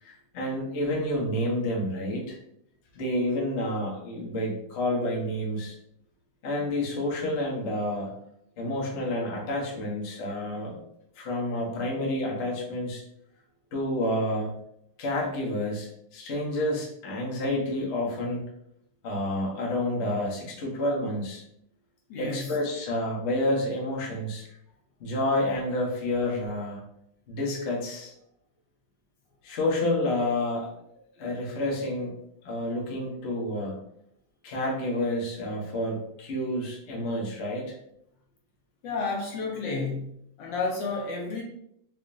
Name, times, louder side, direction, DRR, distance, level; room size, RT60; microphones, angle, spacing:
voice 1, 0.0-2.4 2.9-5.7 6.4-8.1 8.6-10.8 11.2-13.0 13.7-14.6 15.0-18.5 19.0-21.4 22.2-24.4 25.0-26.8 27.3-28.1 29.4-30.7 31.2-32.2 32.4-33.7 34.4-37.8, left 1 dB, 55° left, -3 dB, 0.8 m, -29 dB
voice 2, 22.1-22.5 38.8-40.1 40.4-41.4, left 3 dB, 70° left, -1 dB, 1.2 m, -31 dB
4.9 x 2.5 x 2.5 m, 0.75 s
omnidirectional pair, 2.4 m